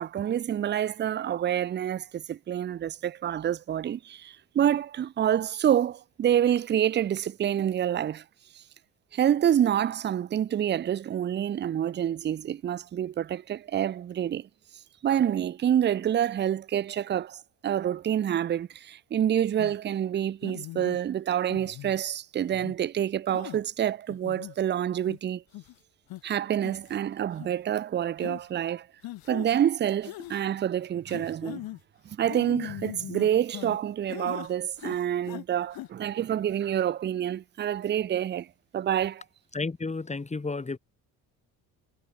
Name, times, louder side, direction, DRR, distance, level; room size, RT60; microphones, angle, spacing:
voice 1, 0.0-8.2 9.1-14.5 15.0-25.4 26.2-28.9 29.3-31.7 32.1-38.5 38.7-39.2, right 10 dB, 30° right, 0.5 m, -27 dB
sound 1, 19.6-19.8 20.4-21.0 21.5-22.0 22.5-22.8 23.3-23.6 24.1-24.5 25.1-25.2 25.5-25.7 26.1-26.2 26.6-27.0 27.3-27.5 28.2-28.4 29.0-29.5 30.0-30.4 31.1-31.8 32.3-33.8 34.1-34.5 34.8-35.4 35.7-35.9, left 17 dB, 65° left, 1.0 m, -40 dB
voice 2, 39.5-40.8, left 3 dB, 15° left, 2.4 m, -32 dB
cardioid pair, 90°, 39 cm